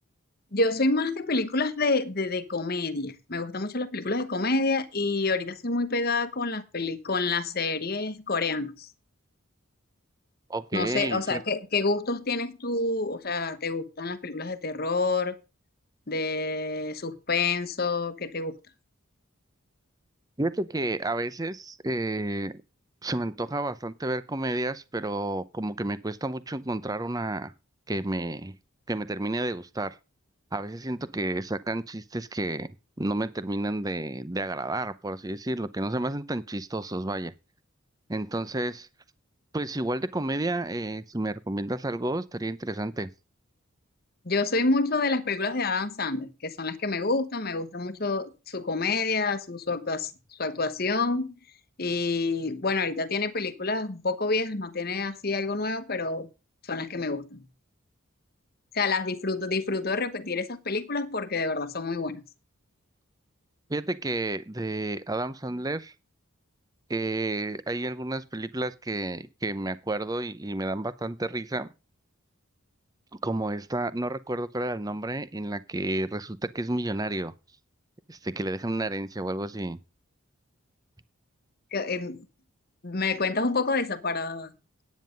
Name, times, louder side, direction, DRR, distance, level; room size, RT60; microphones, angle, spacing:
voice 1, 0.5-8.9 10.7-15.3 16.1-18.5 44.2-51.3 51.8-56.3 56.6-57.4 58.7-62.2 81.7-82.2 82.8-84.5, left 3 dB, 45° left, 1.2 m, -28 dB
voice 2, 10.5-11.4 20.4-22.6 23.0-27.5 27.9-28.5 28.9-30.0 30.5-32.7 33.0-37.3 38.1-38.9 39.5-43.1 63.7-65.9 66.9-71.7 73.2-77.3 78.1-79.8, right 2 dB, 15° right, 0.6 m, -31 dB
9.9 x 9.4 x 5.2 m
head